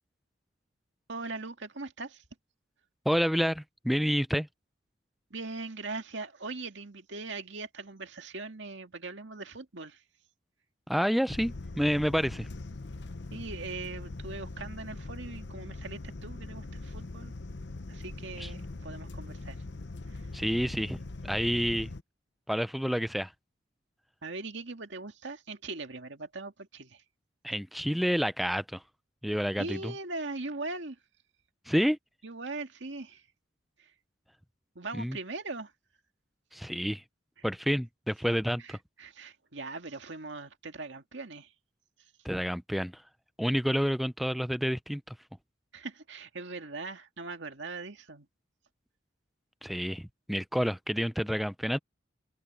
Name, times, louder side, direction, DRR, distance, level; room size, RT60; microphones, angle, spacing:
voice 1, 1.1-2.2 5.3-10.0 13.3-17.3 17.9-19.6 20.1-20.2 24.2-27.0 29.6-31.0 32.2-33.2 33.8-33.9 34.8-35.7 37.4-37.5 38.6-41.5 45.7-48.3, right 3 dB, 70° right, 2.1 m, -40 dB
voice 2, 3.1-4.5 10.9-12.5 18.4-18.5 20.3-21.9 22.5-23.3 27.4-28.8 29.2-29.9 31.7-32.0 34.9-35.2 36.5-37.0 37.4-38.8 42.2-43.0 43.4-45.2 49.6-51.8, equal, ahead, 0.5 m, -29 dB
sound 1, 11.3-22.0, left 2 dB, 60° left, 0.9 m, -41 dB
open air
head